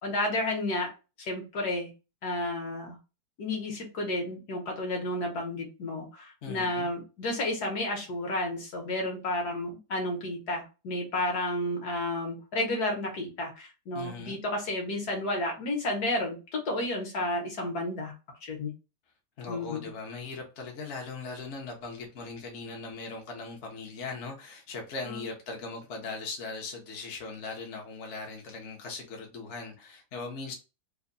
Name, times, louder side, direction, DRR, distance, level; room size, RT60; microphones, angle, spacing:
voice 1, 0.0-0.9 1.2-1.9 2.2-3.0 3.4-18.1 18.4-18.7 19.5-19.9 25.1-25.2, left 1 dB, 65° left, 1.6 m, -31 dB
voice 2, 6.4-6.9 13.9-14.4 19.4-30.5, left 4 dB, 50° left, 1.0 m, -39 dB
3.4 x 2.2 x 3.9 m
omnidirectional pair, 1.8 m